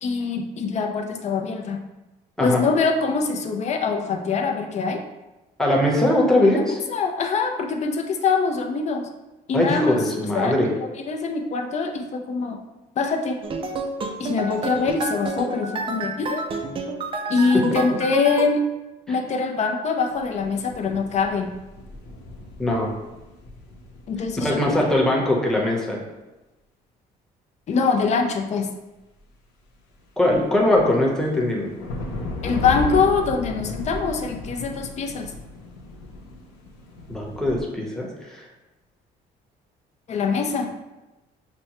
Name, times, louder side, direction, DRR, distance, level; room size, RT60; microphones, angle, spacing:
voice 1, 0.0-1.8 2.4-5.0 6.5-6.6 6.9-9.1 9.5-10.0 10.3-12.6 13.0-13.4 14.2-16.4 17.3-18.6 19.1-21.5 24.1-24.8 27.7-28.7 32.4-35.3 40.1-40.7, left 4 dB, 40° left, 4 dB, 0.5 m, -24 dB
voice 2, 5.6-6.8 9.5-10.7 19.1-19.2 22.6-22.9 24.4-26.0 30.2-31.7 37.1-38.4, left 1 dB, 5° left, -3 dB, 0.9 m, -21 dB
sound 1, 13.4-18.5, right 3 dB, 30° right, 0.4 m, -29 dB
sound 2, 20.1-25.3 30.3-37.6, left 3 dB, 90° left, 0.7 m, -35 dB
5.9 x 2.1 x 2.9 m, 1.0 s
cardioid pair, 110°, 17 cm